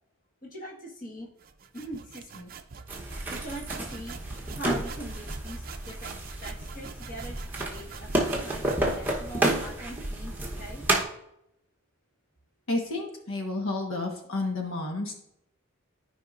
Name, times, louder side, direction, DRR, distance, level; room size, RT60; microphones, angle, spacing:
voice 1, 0.4-1.3 1.7-2.5 3.3-6.2 6.4-10.9, right 1 dB, 40° left, -2 dB, 1.6 m, -42 dB
sound 1, 1.4-10.0, right 5 dB, 45° right, 0.5 m, -45 dB
sound 2, 2.9-11.0, right 1 dB, 10° right, 1.0 m, -31 dB
voice 2, 12.7-15.1, left 2 dB, 80° left, 1 dB, 1.3 m, -31 dB
13.5 x 4.9 x 2.5 m, 0.80 s
head